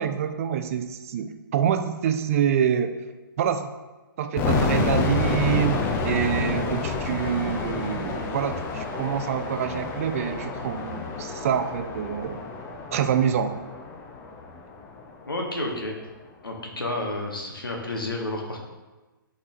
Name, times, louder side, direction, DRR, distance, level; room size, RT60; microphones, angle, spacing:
voice 1, 0.0-3.0 3.4-3.7 4.2-12.4 12.9-13.6, right 8 dB, 40° right, 8 dB, 0.4 m, -26 dB
sound 1, 4.4-15.2, left 4 dB, 20° left, 0.6 m, -29 dB
voice 2, 15.3-15.9 16.4-18.6, left 1 dB, 75° left, 0 dB, 1.5 m, -30 dB
11.5 x 4.2 x 2.5 m, 1.2 s
figure-of-eight pair, 125°, 12 cm